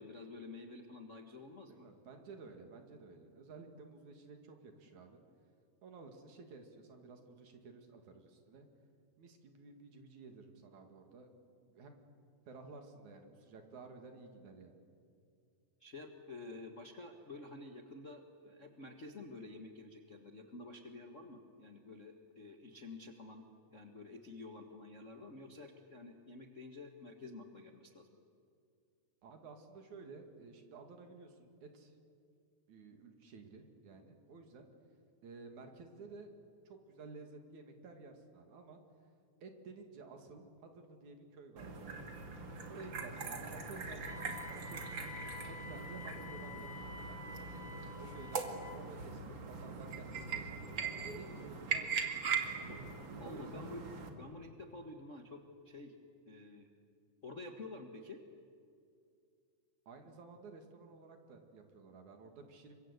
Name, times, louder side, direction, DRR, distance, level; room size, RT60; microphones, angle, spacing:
voice 1, 0.0-1.9 15.8-23.4 23.7-28.1 53.2-53.8 54.2-55.9 56.2-56.7 57.2-58.2, left 2 dB, 40° left, 3 dB, 1.1 m, -50 dB
voice 2, 1.7-5.2 5.8-8.7 9.2-11.3 11.6-12.0 12.5-14.7 29.2-31.9 32.7-34.7 35.2-36.3 36.7-38.8 39.4-42.1 42.7-47.5 48.0-50.6 51.0-52.8 53.2-53.7 59.9-62.8, right 4 dB, 65° right, 5 dB, 3.6 m, -53 dB
sound 1, 41.6-54.1, right 5 dB, 40° right, 2.4 m, -41 dB
Wind instrument woodwind instrument, 44.0-48.8, left 3 dB, 5° left, 2.0 m, -49 dB
28.5 x 24.5 x 8.2 m, 2.4 s
omnidirectional pair, 3.7 m